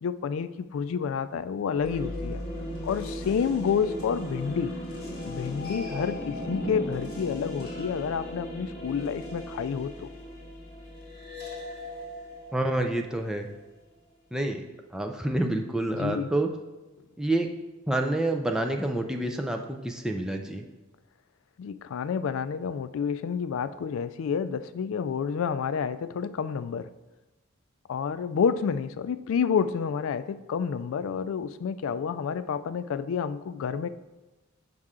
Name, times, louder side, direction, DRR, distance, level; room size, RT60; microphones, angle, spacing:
voice 1, 0.0-2.4 2.8-4.7 5.2-10.1 15.9-16.3 21.6-26.9 27.9-33.9, left 6 dB, 70° left, 14 dB, 0.3 m, -29 dB
sound 1, 1.7-13.6, left 1 dB, 50° left, 1.6 m, -37 dB
voice 2, 12.5-13.5 14.3-14.6 14.9-16.5 17.2-17.5 17.9-20.7, right 1 dB, 5° right, 3 dB, 0.5 m, -28 dB
6.3 x 5.5 x 3.6 m, 1.1 s
head